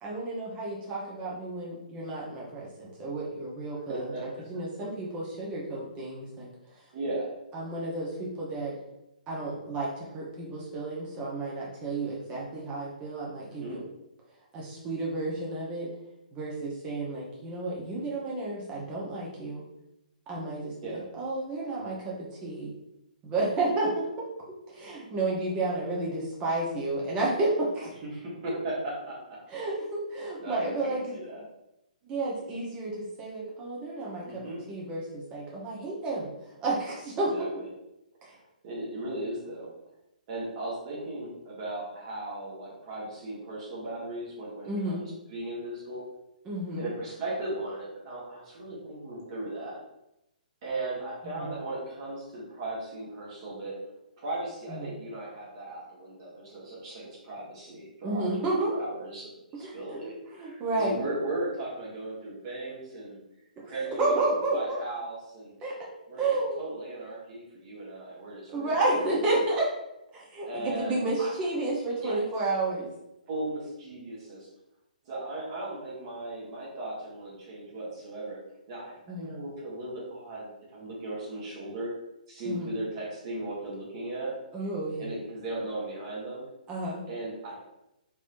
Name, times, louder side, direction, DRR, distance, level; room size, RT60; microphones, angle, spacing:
voice 1, 0.0-6.5 7.5-8.8 9.3-13.8 14.5-15.9 16.3-19.6 20.3-22.7 23.2-24.3 24.7-27.9 28.5-28.6 29.5-31.2 32.0-37.5 38.2-38.4 44.7-45.0 46.4-46.9 51.2-51.5 54.7-54.9 58.0-58.7 59.6-59.8 60.3-61.0 63.6-64.8 65.6-65.7 66.2-66.6 68.5-69.7 70.1-72.9 79.1-79.3 82.4-82.7 84.5-85.1 86.7-87.0, right 2 dB, 20° right, -5 dB, 0.9 m, -31 dB
voice 2, 3.7-4.2 6.9-7.3 13.5-13.8 20.8-21.1 28.0-29.4 30.4-31.4 34.2-34.6 37.3-37.7 38.6-39.7 40.3-46.0 46.7-49.8 50.6-53.8 54.2-63.2 63.7-65.5 66.1-69.1 70.5-71.3 72.0-72.2 73.3-74.5 75.0-78.4 78.7-81.9 82.3-84.4 85.0-86.4 87.1-87.6, right 2 dB, 40° right, -6 dB, 1.4 m, -37 dB
3.4 x 3.1 x 2.6 m, 0.87 s
figure-of-eight pair, 130°, 5 cm